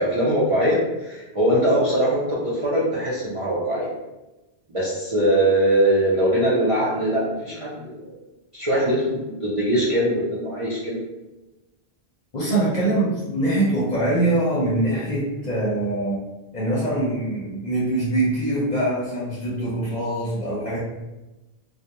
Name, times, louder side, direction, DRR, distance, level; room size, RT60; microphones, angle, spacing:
voice 1, 0.0-3.9 4.7-8.1 8.5-11.0, right 1 dB, 40° right, -8 dB, 0.6 m, -22 dB
voice 2, 12.3-16.2 16.5-20.8, right 1 dB, 50° left, -7 dB, 0.7 m, -23 dB
2.3 x 2.1 x 2.8 m, 1.0 s
omnidirectional pair, 1.0 m